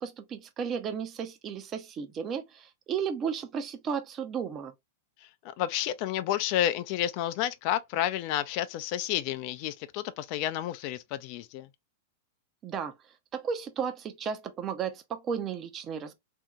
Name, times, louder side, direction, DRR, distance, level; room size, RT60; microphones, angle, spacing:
voice 1, 0.0-4.7 12.6-12.9 13.3-16.1, right 7 dB, 30° right, 0.6 m, -34 dB
voice 2, 5.2-11.7, left 12 dB, 50° left, 0.3 m, -30 dB
2.7 x 2.7 x 2.3 m
hypercardioid pair, 105°, 0 cm